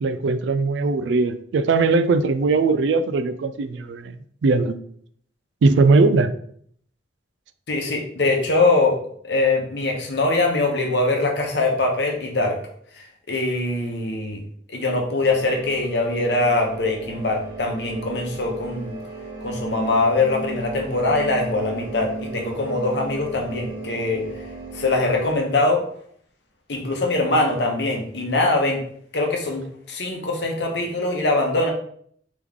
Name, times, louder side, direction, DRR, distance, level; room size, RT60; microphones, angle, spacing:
voice 1, 0.0-4.1 4.4-4.8 5.6-6.3, right 3 dB, 85° right, 12 dB, 0.4 m, -19 dB
voice 2, 7.7-9.0 9.2-12.6 13.3-14.4 14.7-19.0 19.4-24.3 24.7-25.8 26.7-28.8 29.1-31.7, left 2 dB, 70° left, 1 dB, 0.9 m, -22 dB
sound 1, 15.2-25.4, right 2 dB, 55° right, 1.3 m, -36 dB
3.5 x 3.0 x 3.6 m, 0.62 s
head